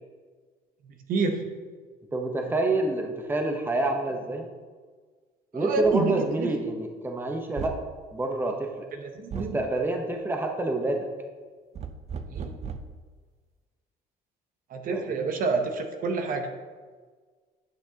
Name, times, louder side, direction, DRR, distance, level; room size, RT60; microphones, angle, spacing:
voice 1, 0.9-1.4 5.5-6.5 9.0-9.6 12.3-12.6 14.7-16.5, right 4 dB, 55° right, 5 dB, 0.9 m, -28 dB
voice 2, 2.1-4.5 5.5-7.7 8.1-8.9 9.3-11.1 14.9-15.2, right 2 dB, 10° right, 3 dB, 0.9 m, -28 dB
sound 1, 5.8-6.0 7.6-7.9 9.3-9.6 11.7-13.0, right 5 dB, 40° right, 0.5 m, -36 dB
10.5 x 5.9 x 2.9 m, 1.5 s
cardioid pair, 110°, 17 cm